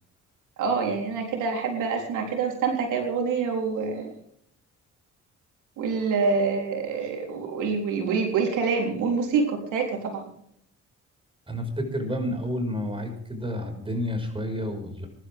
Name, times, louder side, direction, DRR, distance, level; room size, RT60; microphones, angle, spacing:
voice 1, 0.6-4.1 5.8-10.3, right 5 dB, 85° right, 1 dB, 3.9 m, -26 dB
voice 2, 11.5-15.1, equal, 15° right, 5 dB, 5.7 m, -30 dB
23.5 x 12.0 x 3.7 m, 0.70 s
cardioid pair, 90°, 30 cm